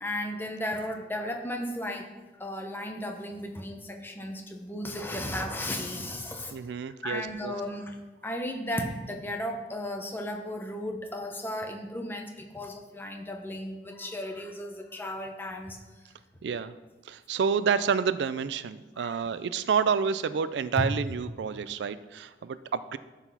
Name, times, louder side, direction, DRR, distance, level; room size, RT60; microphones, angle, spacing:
voice 1, 0.0-2.0 2.4-3.8 4.0-6.5 7.0-7.8 8.2-12.3 12.5-15.8 19.0-19.1, left 1 dB, 10° left, 3 dB, 0.9 m, -35 dB
voice 2, 6.5-7.5 16.4-16.8 17.0-23.0, right 6 dB, 70° right, 14 dB, 0.3 m, -29 dB
12.5 x 4.1 x 5.6 m, 1.2 s
head